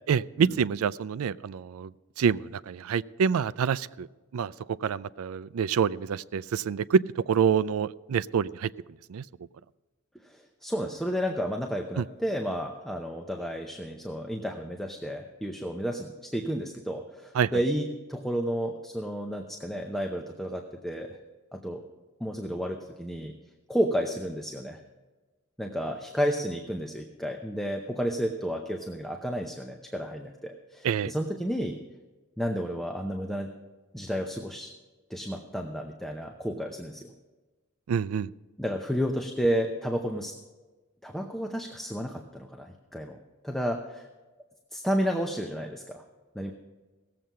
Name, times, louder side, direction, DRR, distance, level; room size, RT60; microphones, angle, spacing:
voice 1, 0.1-1.9 2.2-4.1 4.3-4.5 4.8-8.7 9.1-9.2 12.0-12.1 17.3-17.5 30.8-31.1 37.9-38.3, right 7 dB, 90° right, 18 dB, 0.4 m, -27 dB
voice 2, 10.2-21.2 21.5-21.8 22.2-23.3 23.7-24.8 25.6-31.8 32.4-33.5 33.9-34.7 35.1-37.1 38.6-40.3 41.0-44.1 44.7-46.0 46.3-46.5, equal, ahead, 2 dB, 0.7 m, -31 dB
17.5 x 7.6 x 5.6 m, 1.2 s
head